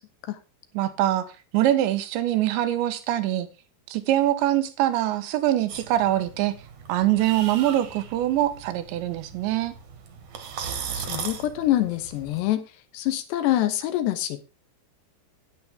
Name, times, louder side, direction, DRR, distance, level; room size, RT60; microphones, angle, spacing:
voice 1, 0.8-1.3 1.5-3.5 3.9-6.5 6.9-9.8, right 13 dB, 85° right, 3.4 m, -23 dB
sound 1, 5.7-12.4, right 7 dB, 55° right, 2.4 m, -38 dB
voice 2, 10.9-12.6 12.9-14.4, left 14 dB, 80° left, 3.1 m, -25 dB
10.0 x 9.6 x 3.6 m
omnidirectional pair, 5.0 m